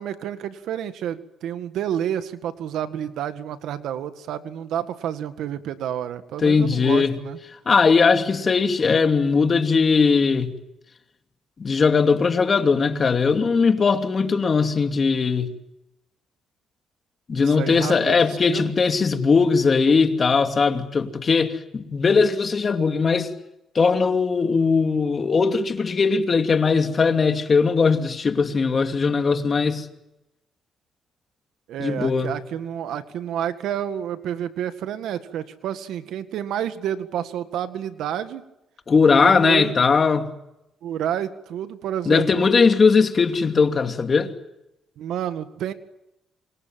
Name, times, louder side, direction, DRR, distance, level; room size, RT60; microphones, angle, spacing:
voice 1, 0.0-7.4 17.3-18.7 31.7-38.4 39.0-39.8 40.8-42.5 45.0-45.7, right 10 dB, 80° right, 1.9 m, -30 dB
voice 2, 6.4-7.2 7.7-10.6 11.6-15.5 17.3-23.3 23.7-29.9 31.8-32.3 38.9-40.3 42.1-44.3, left 5 dB, 40° left, 2.8 m, -19 dB
28.0 x 25.0 x 7.6 m
cardioid pair, 90°, 0 cm